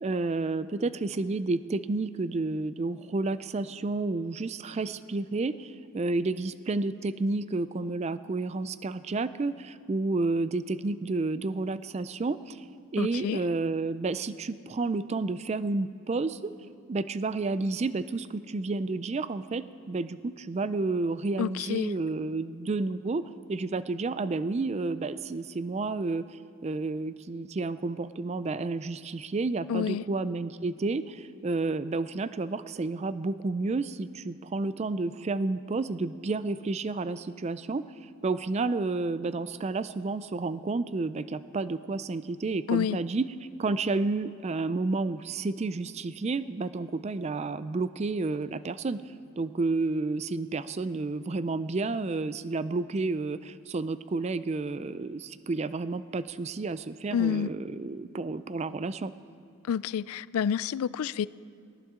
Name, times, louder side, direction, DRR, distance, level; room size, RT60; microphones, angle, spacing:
voice 1, 0.0-12.7 12.9-16.5 16.9-43.3 43.6-59.1, right 3 dB, 30° right, 0.3 m, -31 dB
voice 2, 13.0-13.4 21.4-21.9 29.7-30.0 42.7-43.0 57.1-57.5 59.7-61.3, left 8 dB, 80° left, 0.3 m, -28 dB
18.5 x 18.0 x 3.7 m
head